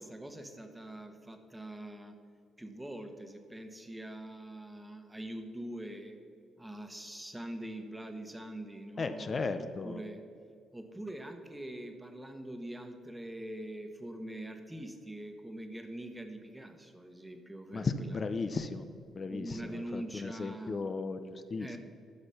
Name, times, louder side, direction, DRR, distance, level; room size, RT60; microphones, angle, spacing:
voice 1, 0.0-2.2 2.6-6.2 6.6-10.2 10.7-18.2 19.1-20.8 21.6-21.8, right 1 dB, 10° right, 6 dB, 1.2 m, -43 dB
voice 2, 9.0-10.0 17.7-18.8 19.2-21.8, left 4 dB, 40° left, 9 dB, 0.6 m, -35 dB
12.0 x 6.1 x 5.7 m, 2.3 s
cardioid pair, 90°, 0 cm